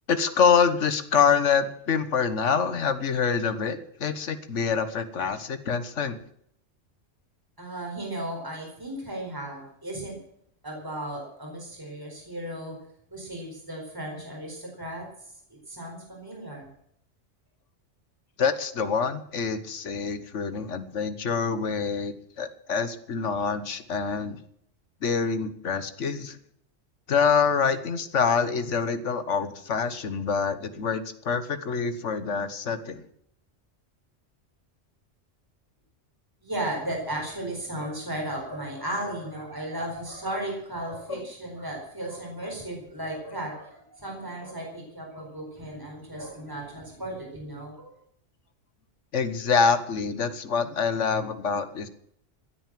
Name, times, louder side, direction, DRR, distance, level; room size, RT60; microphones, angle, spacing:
voice 1, 0.1-6.2 18.4-24.4 25.0-26.4 27.1-33.1 41.1-41.2 49.1-51.9, left 6 dB, 75° left, 12 dB, 1.6 m, -26 dB
voice 2, 7.6-10.2 10.6-12.8 13.1-15.0 15.5-16.7 36.4-47.9, right 1 dB, 15° right, -1 dB, 4.7 m, -35 dB
15.0 x 9.3 x 7.6 m, 0.70 s
omnidirectional pair, 1.3 m